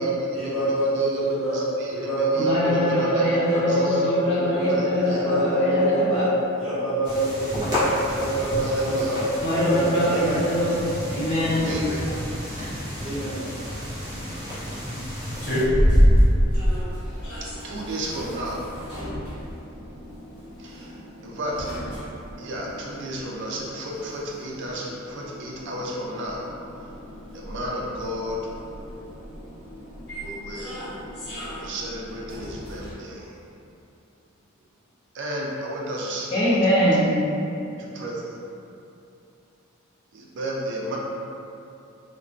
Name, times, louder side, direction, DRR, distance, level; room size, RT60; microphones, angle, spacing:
voice 1, 0.3-3.2 3.4-4.7 5.0-6.3 6.6-10.5 13.0-13.4, right 1 dB, ahead, -16 dB, 1.3 m, -26 dB
voice 2, 1.5-3.4 3.7-4.1 4.7-5.3 8.6-9.2 11.6-12.0 17.6-18.9 20.6-21.0 21.2-21.7 22.4-26.5 27.3-28.4 30.2-30.8 31.4-33.3 35.1-36.8 37.8-38.4 40.1-41.0, right 1 dB, 60° right, -3 dB, 0.4 m, -33 dB
voice 3, 2.4-6.3 9.4-11.7 36.3-37.1, equal, 25° left, -12 dB, 0.4 m, -22 dB
sound 1, 7.0-15.6, equal, 20° right, 0.7 m, -32 dB
sound 2, 15.3-32.9, equal, 50° left, 1.0 m, -28 dB
2.5 x 2.1 x 2.3 m, 2.7 s
head